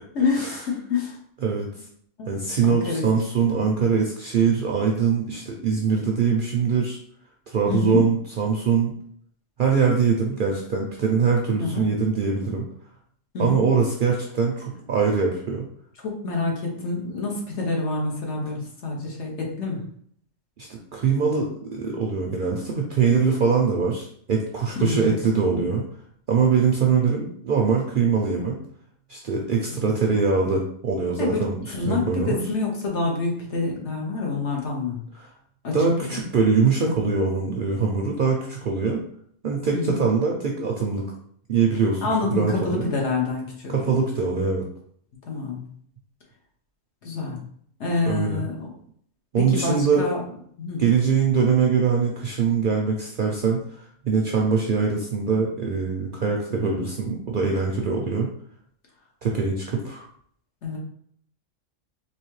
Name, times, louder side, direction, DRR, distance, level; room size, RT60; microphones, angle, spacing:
voice 1, 0.1-1.2 2.2-2.3 2.6-3.0 3.4-3.9 7.6-8.1 11.5-11.8 13.3-13.6 16.0-19.9 24.8-25.2 29.7-29.8 31.2-31.4 31.7-35.0 35.6-35.8 39.7-40.0 42.0-43.7 45.3-45.6 47.0-47.4 47.8-48.7 49.4-50.2 50.6-50.8 60.6-60.8, left 3 dB, 65° left, -1 dB, 1.2 m, -27 dB
voice 2, 2.3-7.0 7.5-8.9 9.6-12.7 13.4-15.7 20.6-25.8 26.3-28.6 29.1-31.6 31.8-32.4 35.1-35.3 35.7-39.0 39.4-41.1 41.5-42.0 42.3-42.9 43.7-44.6 48.1-48.4 49.3-50.0 50.8-58.3 59.2-60.1, right 5 dB, 60° right, 0 dB, 0.5 m, -23 dB
3.9 x 2.8 x 3.1 m, 0.64 s
omnidirectional pair, 1.3 m